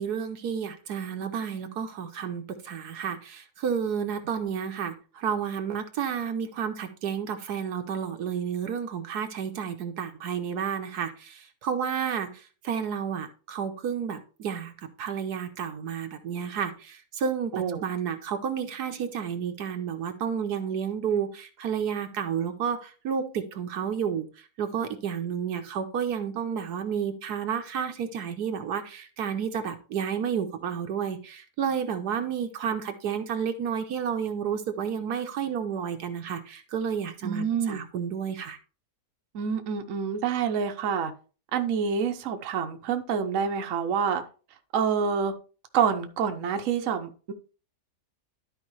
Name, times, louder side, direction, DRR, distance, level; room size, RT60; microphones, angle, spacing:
voice 1, 0.0-24.3 24.6-38.6, right 7 dB, 75° right, 6 dB, 1.4 m, -31 dB
voice 2, 37.2-37.8 39.3-41.1 41.5-44.2 44.7-45.3 45.7-47.3, right 7 dB, 60° right, 6 dB, 1.1 m, -27 dB
12.5 x 4.8 x 3.1 m, 0.36 s
omnidirectional pair, 1.7 m